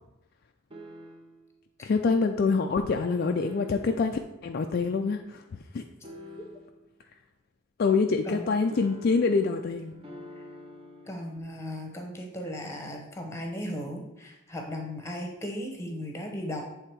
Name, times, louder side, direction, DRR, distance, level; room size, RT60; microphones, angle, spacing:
sound 1, 0.7-1.5 3.4-4.2 6.0-6.9 8.7-11.4, left 1 dB, 25° right, 0.7 m, -46 dB
voice 1, 1.8-5.4 5.7-5.8 7.8-9.9, left 4 dB, 45° left, 5 dB, 0.3 m, -25 dB
voice 2, 11.1-16.6, equal, 15° left, 2 dB, 0.9 m, -36 dB
7.7 x 3.5 x 4.5 m, 0.96 s
head